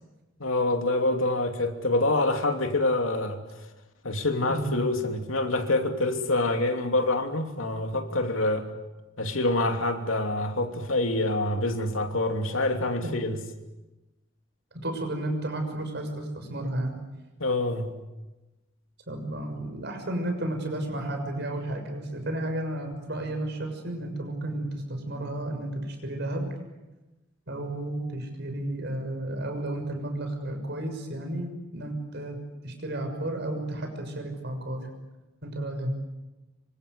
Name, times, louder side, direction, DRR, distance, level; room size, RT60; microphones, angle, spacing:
voice 1, 0.4-3.4 4.0-8.6 9.2-13.4 17.4-17.9, left 2 dB, 85° left, 5 dB, 3.0 m, -26 dB
voice 2, 14.8-16.9 19.1-26.5 27.5-32.4 32.6-34.9 35.4-35.9, right 1 dB, 55° right, 5 dB, 6.5 m, -32 dB
26.0 x 25.0 x 8.3 m, 1.1 s
head